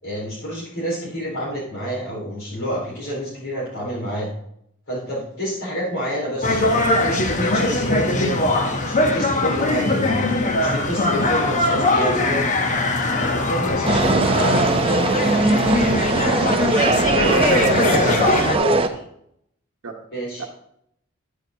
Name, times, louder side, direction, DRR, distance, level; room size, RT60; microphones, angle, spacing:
voice 1, 0.0-4.3 4.9-8.5 8.8-10.2 10.6-12.4 13.2-14.6 17.2-18.0 18.6-19.0 20.1-20.4, equal, 70° left, -6 dB, 4.2 m, -28 dB
sound 1, 6.4-18.5, left 2 dB, 35° left, 0.8 m, -21 dB
sound 2, 13.9-18.9, right 3 dB, 25° right, 0.5 m, -20 dB
voice 2, 17.1-17.9 19.8-19.9 20.4-20.5, right 4 dB, 75° right, 0 dB, 1.0 m, -33 dB
11.0 x 8.5 x 2.7 m, 0.73 s
head